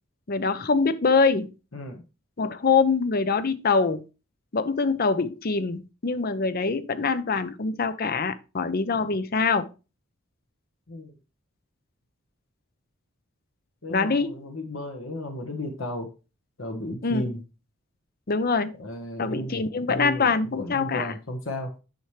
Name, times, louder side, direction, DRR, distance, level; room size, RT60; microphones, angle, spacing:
voice 1, 0.3-1.5 2.4-4.0 4.5-9.7 13.9-14.4 17.0-17.3 18.3-18.7 19.2-21.1, left 4 dB, 45° left, 0.6 m, -24 dB
voice 2, 13.8-16.1 16.6-17.4 18.8-19.5 19.9-21.7, left 1 dB, 70° left, 1.3 m, -34 dB
9.0 x 5.8 x 3.2 m
head